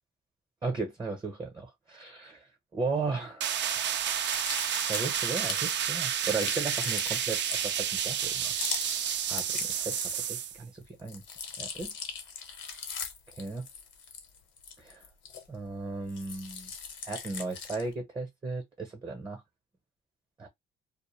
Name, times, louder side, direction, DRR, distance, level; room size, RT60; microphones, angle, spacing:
voice 1, 0.6-2.4 2.7-3.5 4.9-8.5 9.3-11.2 11.6-12.0 13.4-13.7 14.8-15.0 15.5-16.7 17.1-19.4 20.4-20.5, right 3 dB, 25° right, 0.8 m, -36 dB
sound 1, 3.4-10.6, right 9 dB, 65° right, 0.4 m, -30 dB
sound 2, 4.0-10.5 10.8-15.7 16.1-17.9, left 6 dB, 70° left, 0.9 m, -40 dB
2.2 x 2.0 x 3.1 m
cardioid pair, 90°, 20 cm